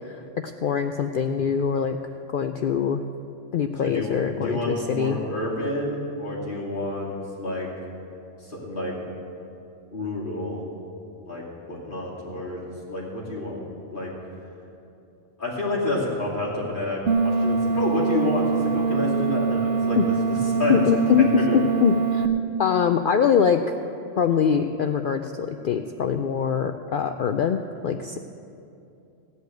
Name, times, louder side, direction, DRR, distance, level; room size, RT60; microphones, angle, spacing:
voice 1, 0.0-2.0 2.3-3.0 3.5-5.2 20.0-20.1 20.7-21.3 21.5-22.3 22.6-23.6 24.2-28.2, left 7 dB, 60° left, 7 dB, 0.5 m, -23 dB
voice 2, 3.8-7.7 8.4-9.0 9.9-10.6 11.2-11.4 11.7-12.6 12.9-13.6 13.9-14.1 15.4-20.1 20.6-20.8 21.2-21.6, left 1 dB, 40° left, -6 dB, 3.0 m, -29 dB
sound 1, 17.1-22.3, right 5 dB, 60° right, 0.8 m, -24 dB
16.5 x 5.5 x 9.1 m, 2.7 s
omnidirectional pair, 1.3 m